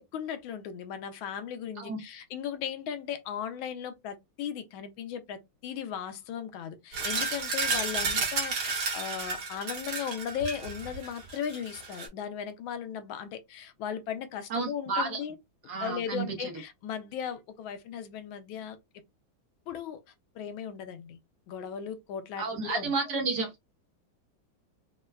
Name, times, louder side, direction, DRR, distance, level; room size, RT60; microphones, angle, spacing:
voice 1, 0.0-15.4 15.8-18.8 19.7-20.0 20.3-21.2 21.5-23.1, left 8 dB, 80° left, 1.4 m, -37 dB
sound 1, 6.9-12.1, right 4 dB, 85° right, 2.0 m, -32 dB
voice 2, 14.5-15.2 15.7-16.5 22.4-23.5, right 4 dB, 60° right, 1.3 m, -31 dB
4.4 x 2.1 x 2.3 m
omnidirectional pair, 2.2 m